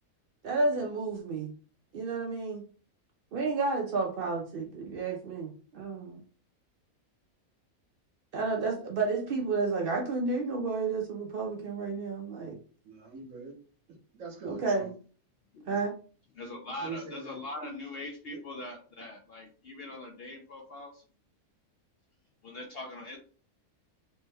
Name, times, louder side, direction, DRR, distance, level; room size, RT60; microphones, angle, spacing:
voice 1, 0.4-1.5 1.9-2.6 3.3-6.2 8.3-12.6 14.4-14.9 15.7-15.9, right 3 dB, 90° right, 1 dB, 0.4 m, -31 dB
voice 2, 12.8-13.5 14.1-14.9 16.8-17.4 18.3-18.4, right 4 dB, 60° right, 2 dB, 1.1 m, -42 dB
voice 3, 16.4-21.0 22.4-23.2, left 2 dB, 75° left, 2 dB, 0.5 m, -42 dB
3.3 x 2.1 x 3.3 m, 0.41 s
omnidirectional pair, 1.6 m